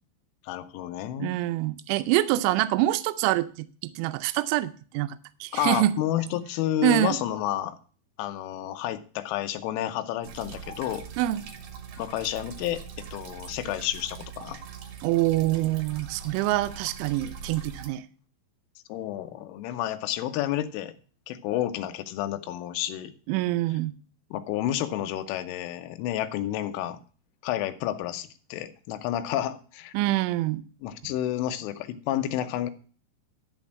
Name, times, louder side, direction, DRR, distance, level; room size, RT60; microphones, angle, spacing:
voice 1, 0.4-1.4 5.5-7.8 8.2-11.1 12.0-14.6 18.9-21.0 21.3-23.1 24.3-27.0 27.4-29.9 30.8-32.7, left 12 dB, 85° left, 10 dB, 3.3 m, -30 dB
voice 2, 1.2-6.0 6.8-7.2 11.2-11.4 15.0-18.0 23.3-23.9 29.9-30.6, right 15 dB, 85° right, 12 dB, 3.0 m, -25 dB
sound 1, 10.2-17.9, right 6 dB, 70° right, 2.2 m, -42 dB
12.0 x 4.3 x 7.2 m, 0.40 s
omnidirectional pair, 5.5 m